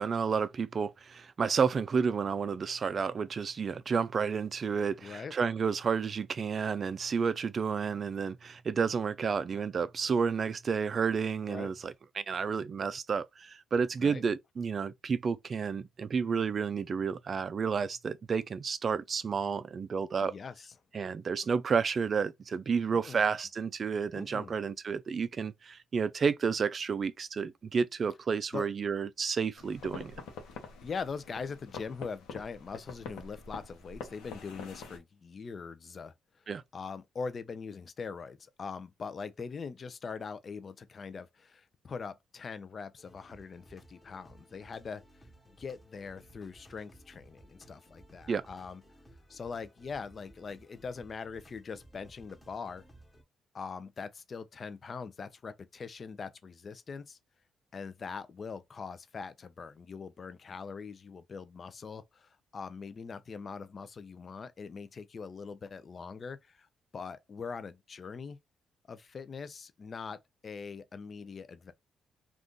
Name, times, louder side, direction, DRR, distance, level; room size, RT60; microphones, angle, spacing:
voice 1, 0.0-20.3 20.9-30.1 36.5-36.6 48.3-48.4, right 6 dB, 45° right, 0.3 m, -31 dB
voice 2, 5.0-5.3 11.5-11.7 14.0-14.2 20.2-20.7 22.9-23.2 24.1-24.5 28.5-28.7 30.8-36.4 36.7-45.3 45.6-48.8 49.3-52.8 53.5-57.2 57.7-66.7 66.9-68.4 68.9-71.7, left 5 dB, 40° left, 0.4 m, -42 dB
sound 1, 29.6-35.0, left 5 dB, 90° left, 0.8 m, -46 dB
sound 2, 43.0-53.2, equal, 10° left, 1.0 m, -58 dB
2.5 x 2.4 x 3.6 m
cardioid pair, 90°, 0 cm